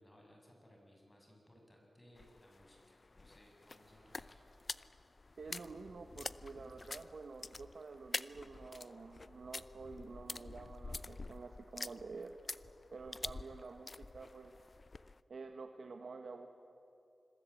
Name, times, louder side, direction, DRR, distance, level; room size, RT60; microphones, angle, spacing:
voice 1, 0.0-4.4, equal, 20° left, 0 dB, 7.2 m, -63 dB
sound 1, 2.2-15.2, left 3 dB, 45° left, 0.6 m, -47 dB
sound 2, 3.5-10.3 10.9-12.8, right 1 dB, 20° right, 6.4 m, -73 dB
voice 2, 5.4-12.3 12.9-14.6 15.3-16.5, right 4 dB, 80° right, 5 dB, 1.3 m, -49 dB
27.5 x 22.0 x 8.5 m, 2.8 s
wide cardioid pair, 95°, 0 cm